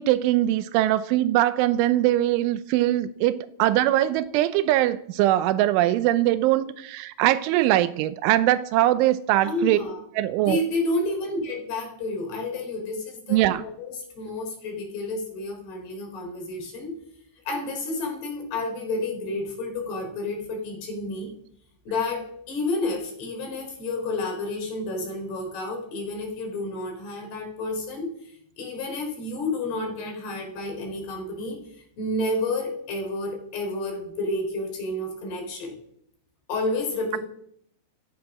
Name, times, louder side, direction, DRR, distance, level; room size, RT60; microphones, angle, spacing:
voice 1, 0.0-9.8 10.2-10.6 13.3-13.6, right 14 dB, 85° right, 3.2 m, -22 dB
voice 2, 9.4-10.0 10.4-16.9 17.5-21.3 21.9-28.1 28.6-31.6 32.0-35.8 36.5-37.2, left 2 dB, 60° left, 5.9 m, -30 dB
14.5 x 13.5 x 6.1 m
omnidirectional pair, 5.5 m